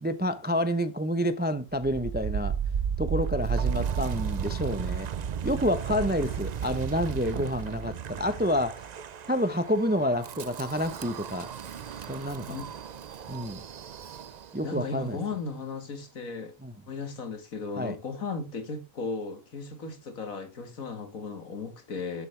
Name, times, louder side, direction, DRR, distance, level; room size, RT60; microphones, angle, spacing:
voice 1, 0.0-2.5 3.0-5.1 5.4-8.8 9.3-11.5 12.1-12.5 13.3-13.6 14.5-15.2 16.6-16.7 17.8-18.0, equal, 10° right, 0.5 m, -28 dB
Wind, 1.8-14.7, right 7 dB, 80° right, 0.3 m, -34 dB
voice 2, 14.6-16.6 16.9-22.3, left 4 dB, 75° left, 2.2 m, -36 dB
11.5 x 7.6 x 3.3 m
omnidirectional pair, 1.5 m